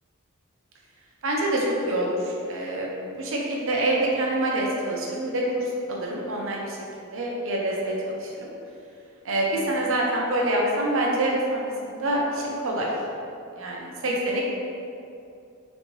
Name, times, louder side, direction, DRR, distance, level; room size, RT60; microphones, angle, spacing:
voice 1, 1.2-2.9 3.2-8.5 9.2-12.9 13.6-14.4, right 1 dB, 65° right, -3 dB, 0.7 m, -26 dB
4.1 x 3.4 x 3.1 m, 2.6 s
head